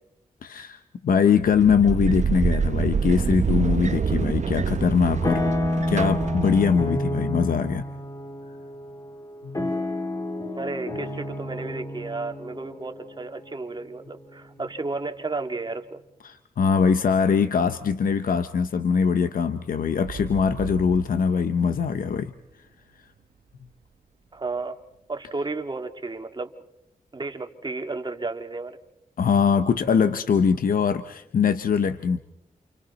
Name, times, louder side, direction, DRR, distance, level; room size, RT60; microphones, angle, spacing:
voice 1, 0.4-5.4 5.9-7.8 9.4-9.7 16.2-22.3 29.2-32.2, left 6 dB, 75° left, 11 dB, 0.8 m, -22 dB
sound 1, 1.4-7.0, right 5 dB, 50° right, 0.9 m, -26 dB
sound 2, 3.9-4.4 4.8-14.8, left 1 dB, 25° left, 2.6 m, -30 dB
voice 2, 10.6-16.0 24.3-24.8 25.1-26.5 27.1-28.8, right 3 dB, 30° right, 6 dB, 1.9 m, -32 dB
sound 3, 20.0-23.9 24.5-24.6, right 6 dB, 80° right, 1.3 m, -39 dB
29.0 x 28.5 x 4.1 m, 0.84 s
cardioid pair, 80°, 15 cm